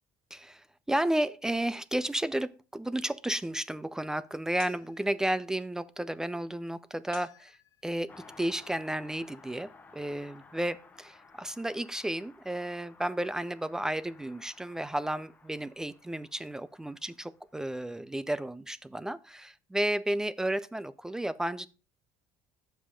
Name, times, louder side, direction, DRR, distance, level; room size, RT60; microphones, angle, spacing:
voice 1, 0.3-8.1 8.4-21.7, right 1 dB, 5° right, 0.3 m, -33 dB
sound 1, 4.6-5.5 7.1-8.1, left 12 dB, 60° left, 0.6 m, -51 dB
Car passing by, 8.1-18.0 18.3-18.4, left 4 dB, 20° left, 1.0 m, -56 dB
7.3 x 5.6 x 4.9 m
cardioid pair, 120°, 8 cm